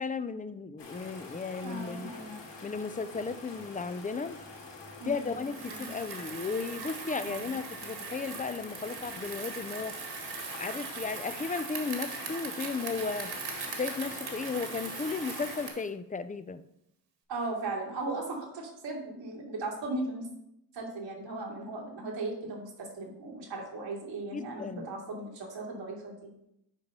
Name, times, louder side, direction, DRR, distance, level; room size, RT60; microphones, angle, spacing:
voice 1, 0.0-2.1 2.6-4.4 5.1-10.0 10.6-13.3 13.8-16.6 24.3-24.9, left 4 dB, 20° left, 13 dB, 0.4 m, -35 dB
sound 1, 0.8-15.7, left 3 dB, 85° left, 2.3 m, -46 dB
voice 2, 1.6-2.4 5.0-5.9 7.2-7.6 17.3-20.3 20.7-26.2, right 2 dB, 85° right, -3 dB, 2.5 m, -37 dB
Bicycle, 5.4-15.9, right 5 dB, 65° right, 1.9 m, -40 dB
7.7 x 4.7 x 5.4 m, 0.80 s
cardioid pair, 105°, 42 cm